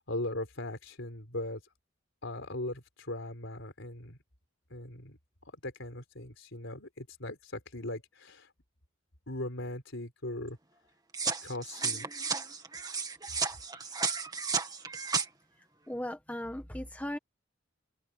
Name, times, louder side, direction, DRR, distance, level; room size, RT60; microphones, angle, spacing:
voice 1, 0.0-1.6 2.2-4.2 4.7-5.2 5.6-8.5 9.3-10.6 11.4-12.1, left 1 dB, 60° left, 4.8 m, -39 dB
sound 1, 11.1-15.3, right 5 dB, 20° right, 2.0 m, -33 dB
voice 2, 15.9-17.2, left 1 dB, 5° left, 1.2 m, -37 dB
open air
head